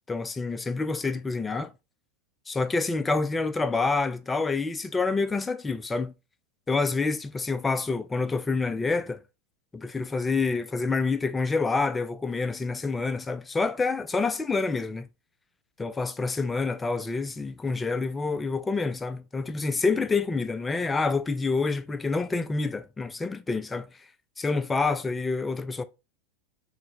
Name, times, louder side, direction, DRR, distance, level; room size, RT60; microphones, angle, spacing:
voice 1, 0.1-1.7 2.5-6.1 6.7-9.2 9.7-15.1 15.8-23.9 24.4-25.8, left 4 dB, 15° left, 0.3 m, -27 dB
4.5 x 2.1 x 2.9 m
hypercardioid pair, 95°, 0 cm